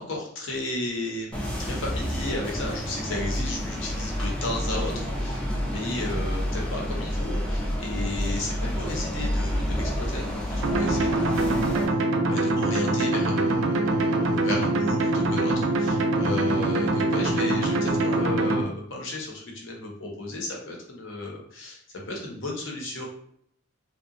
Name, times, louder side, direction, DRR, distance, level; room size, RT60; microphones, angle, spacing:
voice 1, 0.0-11.8 12.3-21.8 22.1-23.1, left 2 dB, 70° left, -1 dB, 0.7 m, -34 dB
sound 1, 1.3-11.9, equal, 5° left, 0.3 m, -29 dB
sound 2, 10.6-18.6, right 2 dB, 80° right, 0.4 m, -24 dB
2.8 x 2.2 x 2.4 m, 0.69 s
head